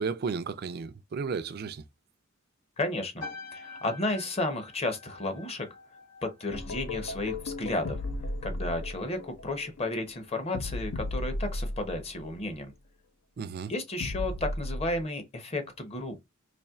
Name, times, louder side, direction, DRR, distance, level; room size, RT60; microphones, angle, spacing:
voice 1, 0.0-1.9 13.4-13.7, right 5 dB, 50° right, 0.4 m, -33 dB
voice 2, 2.8-3.3 3.5-5.7 6.2-8.0 8.4-12.7 13.7-16.2, left 2 dB, 30° left, 0.7 m, -33 dB
sound 1, 3.2-7.8 8.1-8.5, left 3 dB, 60° left, 1.9 m, -47 dB
sound 2, 6.5-12.3 14.0-15.0, left 2 dB, 80° left, 0.5 m, -35 dB
4.2 x 3.0 x 2.3 m
head